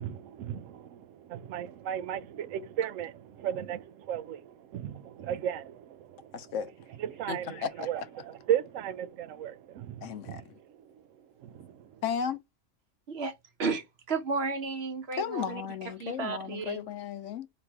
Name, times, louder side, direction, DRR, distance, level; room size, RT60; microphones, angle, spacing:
voice 1, 0.0-6.7 7.0-12.0, right 10 dB, 90° right, 1.0 m, -36 dB
voice 2, 6.3-6.7 7.3-7.9 10.0-10.4 12.0-12.4 15.2-17.5, left 7 dB, 75° left, 1.0 m, -34 dB
voice 3, 13.6-15.6 16.0-16.8, right 4 dB, 60° right, 1.0 m, -33 dB
3.4 x 3.0 x 4.6 m
omnidirectional pair, 1.3 m